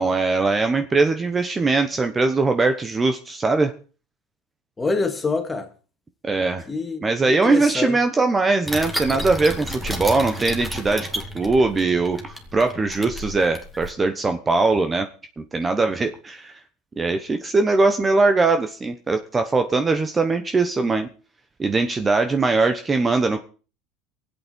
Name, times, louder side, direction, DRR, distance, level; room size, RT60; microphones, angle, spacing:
voice 1, 0.0-3.7 6.2-6.6 7.0-11.1 11.3-15.1 15.4-16.5 17.0-21.1 21.6-23.4, right 3 dB, 20° right, 1.1 m, -21 dB
voice 2, 4.8-5.7 6.7-8.0, left 3 dB, 15° left, 2.3 m, -26 dB
sound 1, 8.7-13.9, equal, 5° right, 2.3 m, -32 dB
23.5 x 8.4 x 4.5 m
supercardioid pair, 115°, 0 cm